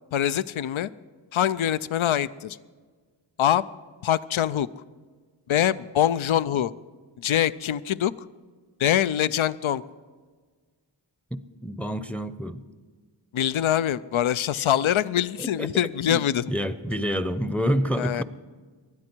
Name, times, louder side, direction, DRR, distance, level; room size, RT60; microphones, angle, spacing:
voice 1, 0.1-0.9 1.3-2.6 3.4-3.6 4.0-4.7 5.5-6.7 7.2-8.1 8.8-9.8 13.3-16.5 18.0-18.2, left 11 dB, 75° left, 17 dB, 0.5 m, -24 dB
voice 2, 11.3-12.6 15.4-15.8 16.1-16.2 16.5-18.2, equal, 5° left, 12 dB, 0.6 m, -28 dB
19.5 x 12.5 x 4.5 m, 1.5 s
wide cardioid pair, 45°, 48 cm